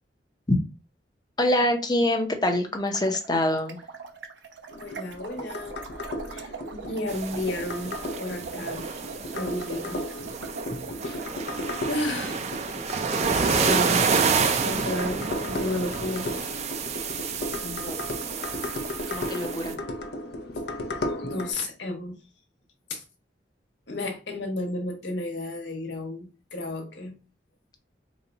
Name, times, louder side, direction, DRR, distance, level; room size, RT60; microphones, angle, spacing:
voice 1, 1.4-3.8 13.3-13.8 17.6-18.5 19.1-19.7, left 1 dB, 25° left, 0.7 m, -26 dB
sound 1, 2.8-11.3, right 4 dB, 90° right, 0.7 m, -41 dB
sound 2, 4.7-21.5, left 1 dB, 60° left, 0.6 m, -35 dB
voice 2, 4.8-5.8 6.3-9.0 9.3-10.0 11.0-11.2 11.9-12.4 13.4-16.3 21.3-22.2 22.9-23.0 23.9-27.1, left 1 dB, 80° left, 1.2 m, -33 dB
sound 3, 7.1-19.7, right 5 dB, 40° right, 0.4 m, -29 dB
4.0 x 2.3 x 4.0 m
head